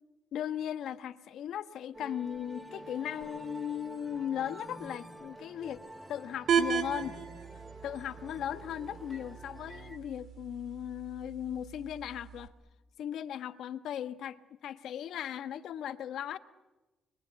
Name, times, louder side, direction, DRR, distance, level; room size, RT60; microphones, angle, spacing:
voice 1, 0.3-5.8 6.1-7.2 7.8-12.5 13.0-16.4, left 10 dB, 75° left, 10 dB, 1.3 m, -37 dB
sound 1, 1.9-10.0, right 1 dB, 5° right, 2.4 m, -48 dB
sound 2, 6.5-12.5, right 7 dB, 70° right, 2.6 m, -36 dB
29.0 x 23.0 x 8.3 m, 1.1 s
cardioid pair, 90°, 0 cm